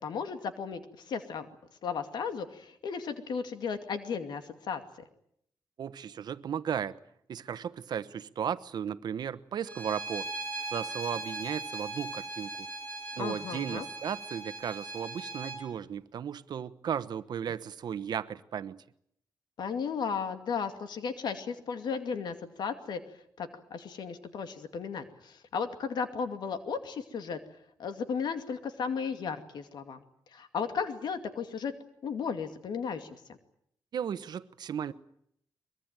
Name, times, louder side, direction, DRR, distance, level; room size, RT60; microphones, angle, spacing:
voice 1, 0.0-1.5 1.8-4.8 13.2-13.9 19.6-23.0 23.4-27.4 27.8-30.0 30.3-31.7 32.0-33.2, left 6 dB, 85° left, 2.4 m, -35 dB
voice 2, 5.8-7.0 7.3-10.3 10.7-12.7 13.2-18.8 33.9-34.9, right 8 dB, 75° right, 1.1 m, -35 dB
Bowed string instrument, 9.7-15.6, right 2 dB, 20° left, 7.8 m, -39 dB
23.0 x 22.0 x 9.1 m
wide cardioid pair, 120°, 7 cm